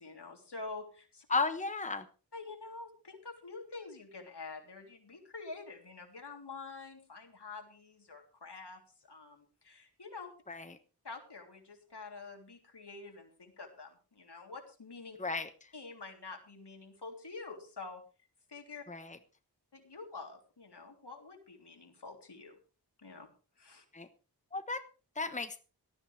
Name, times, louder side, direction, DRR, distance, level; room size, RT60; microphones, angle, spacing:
voice 1, 0.0-1.3 2.3-10.3 11.0-15.2 15.7-18.0 18.5-18.8 19.7-22.6 23.0-23.3 23.6-23.9, left 3 dB, 75° left, 3 dB, 3.5 m, -47 dB
voice 2, 1.3-2.0 10.5-10.6 15.2-15.5 18.9-19.2 23.9-24.1 24.5-24.8 25.2-25.6, left 3 dB, 15° left, 10 dB, 1.1 m, -34 dB
18.5 x 13.5 x 3.4 m, 0.35 s
wide cardioid pair, 60°, 41 cm